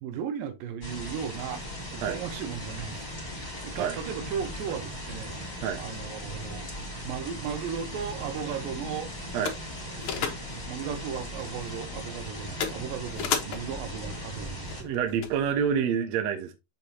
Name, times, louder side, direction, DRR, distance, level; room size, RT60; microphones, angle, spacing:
voice 1, 0.0-1.6 1.9-3.1 3.4-5.4 5.8-6.7 7.0-9.1 10.0-10.3 10.7-14.8, right 8 dB, 80° right, 2.6 m, -36 dB
sound 1, 0.8-14.8, equal, 15° left, 2.2 m, -38 dB
sound 2, 7.7-15.8, left 7 dB, 65° left, 2.3 m, -38 dB
voice 2, 14.8-16.5, right 7 dB, 65° right, 2.0 m, -27 dB
7.0 x 6.6 x 2.8 m
omnidirectional pair, 4.1 m